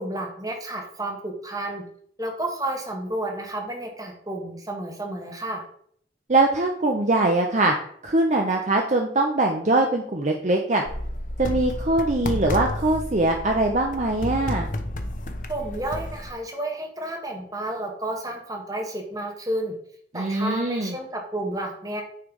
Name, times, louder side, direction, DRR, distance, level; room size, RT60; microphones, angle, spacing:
voice 1, 0.0-1.8 2.2-5.6 15.5-19.7 20.1-22.0, right 1 dB, 20° right, 1 dB, 1.5 m, -31 dB
voice 2, 6.3-7.7 8.0-10.8 11.4-14.7 20.1-20.9, right 2 dB, 40° right, 2 dB, 0.7 m, -22 dB
sound 1, 10.9-16.3, left 1 dB, 45° left, 0.8 m, -31 dB
9.3 x 3.4 x 5.4 m, 0.64 s
head